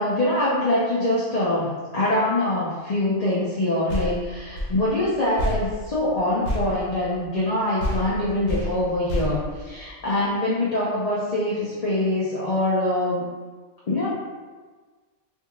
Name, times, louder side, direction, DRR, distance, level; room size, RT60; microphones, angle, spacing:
voice 1, 0.0-13.2 13.9-14.1, left 1 dB, 40° left, -8 dB, 0.6 m, -24 dB
sound 1, 3.9-7.5 7.8-10.3, equal, 85° left, 1.2 m, -30 dB
3.0 x 2.7 x 3.6 m, 1.4 s
omnidirectional pair, 1.3 m